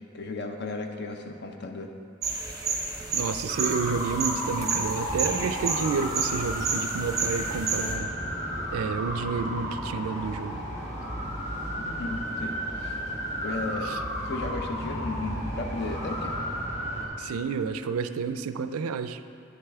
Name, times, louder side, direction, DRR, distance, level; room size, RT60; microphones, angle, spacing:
voice 1, 0.1-1.9 11.8-13.0 13.4-16.4, left 2 dB, 50° left, 4 dB, 0.6 m, -35 dB
sound 1, 2.2-7.9, right 4 dB, 15° right, 0.8 m, -31 dB
voice 2, 3.1-8.1 8.7-10.6 13.8-14.0 17.2-19.2, right 5 dB, 90° right, 11 dB, 0.3 m, -30 dB
sound 2, 3.5-17.1, equal, 30° left, 1.4 m, -33 dB
9.4 x 6.5 x 3.5 m, 2.4 s
head